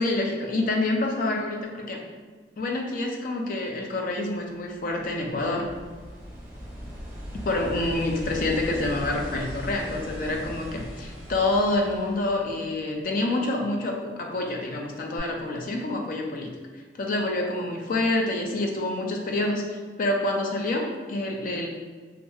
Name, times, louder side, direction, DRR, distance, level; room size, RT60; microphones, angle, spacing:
voice 1, 0.0-2.0 2.6-5.7 7.5-16.5 17.0-21.7, left 2 dB, 50° left, 1 dB, 0.4 m, -27 dB
sound 1, 4.5-13.0 15.2-15.3, equal, 20° right, 1.0 m, -39 dB
2.7 x 2.4 x 2.2 m, 1.4 s
head